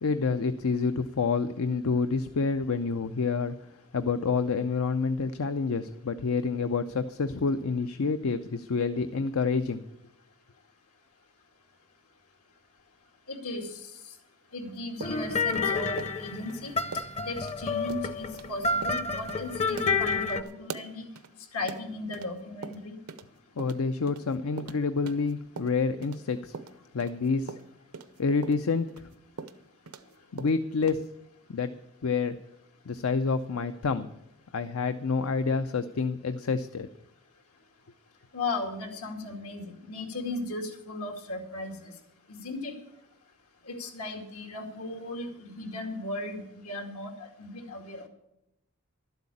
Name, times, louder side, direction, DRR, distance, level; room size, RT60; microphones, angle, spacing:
voice 1, 0.0-3.6 3.9-9.8 23.6-26.5 26.9-27.5 28.2-29.1 30.3-31.1 31.5-31.7 32.0-32.4 32.9-34.1 34.5-36.9, left 4 dB, 70° left, 11 dB, 0.5 m, -28 dB
voice 2, 13.3-13.7 14.5-16.7 17.3-21.1 21.5-23.0 38.3-41.9 42.3-42.7 43.7-48.1, left 2 dB, 85° left, 3 dB, 2.4 m, -36 dB
sound 1, 15.0-20.4, left 4 dB, 30° left, 0.7 m, -29 dB
sound 2, 15.0-16.5 16.9-17.1 17.4-17.6 17.9-18.0 18.3-18.5 18.8-19.0 19.3-19.4 19.8-22.3 22.6-23.3 23.6-26.2 26.5-30.1 30.4-31.1, right 4 dB, 75° right, 0.7 m, -42 dB
12.0 x 8.0 x 8.5 m, 0.83 s
head